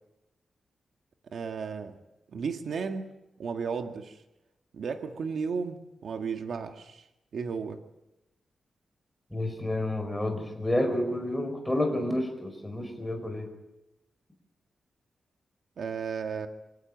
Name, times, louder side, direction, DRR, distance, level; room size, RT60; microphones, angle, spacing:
voice 1, 1.3-2.0 2.3-3.1 3.4-4.2 4.7-7.1 7.3-7.8 15.8-16.5, right 5 dB, 70° right, 5 dB, 1.8 m, -34 dB
voice 2, 9.3-13.5, left 1 dB, 5° left, 5 dB, 5.3 m, -30 dB
25.5 x 17.0 x 9.0 m, 0.95 s
wide cardioid pair, 135°, 0 cm